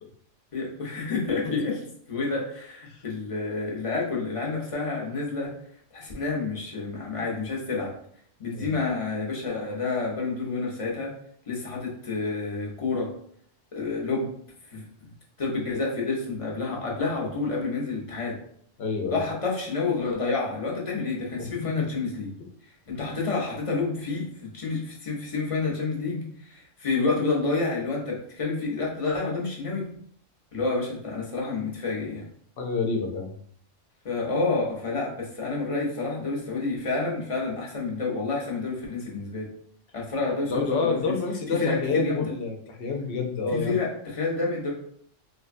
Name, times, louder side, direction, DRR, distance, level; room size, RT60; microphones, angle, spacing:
voice 1, 0.5-5.5 5.9-7.9 8.4-11.1 11.5-13.1 13.7-14.3 14.7-15.1 15.4-18.4 19.1-22.3 22.9-29.8 30.5-32.3 34.0-39.5 39.9-41.2 41.5-42.3 43.5-44.7, left 3 dB, 35° left, -3 dB, 0.6 m, -29 dB
voice 2, 18.8-19.2 21.4-21.5 21.8-21.9 32.6-33.3 40.5-43.8, left 4 dB, 65° left, 3 dB, 0.8 m, -28 dB
3.1 x 2.1 x 2.5 m, 0.63 s
omnidirectional pair, 1.3 m